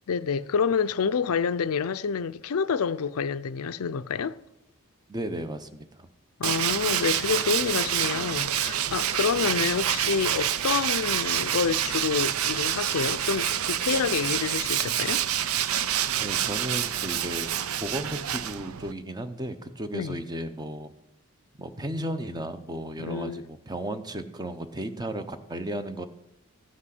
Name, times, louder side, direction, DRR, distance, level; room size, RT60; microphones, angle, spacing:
voice 1, 0.1-4.4 6.4-15.2 19.9-20.2 23.0-23.4, left 6 dB, 80° left, 0.5 m, -28 dB
voice 2, 5.1-6.1 16.2-17.5 17.8-20.9 21.6-26.1, right 1 dB, 20° right, 0.8 m, -34 dB
Tools, 6.4-18.9, right 10 dB, 75° right, 0.5 m, -27 dB
15.0 x 6.3 x 7.7 m
head